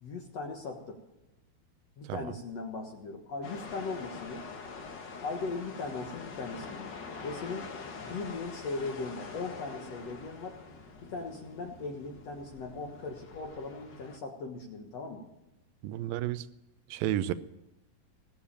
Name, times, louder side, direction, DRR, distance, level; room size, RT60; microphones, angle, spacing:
voice 1, 0.0-1.0 2.0-4.4 5.2-6.9 7.2-7.7 8.0-10.6 11.0-15.2, left 3 dB, 55° left, 3 dB, 2.0 m, -38 dB
sound 1, 3.4-14.2, left 4 dB, 75° left, 1.0 m, -45 dB
voice 2, 15.8-16.5 16.9-17.3, right 13 dB, 75° right, 13 dB, 2.3 m, -32 dB
20.5 x 7.4 x 8.7 m, 0.92 s
omnidirectional pair, 4.5 m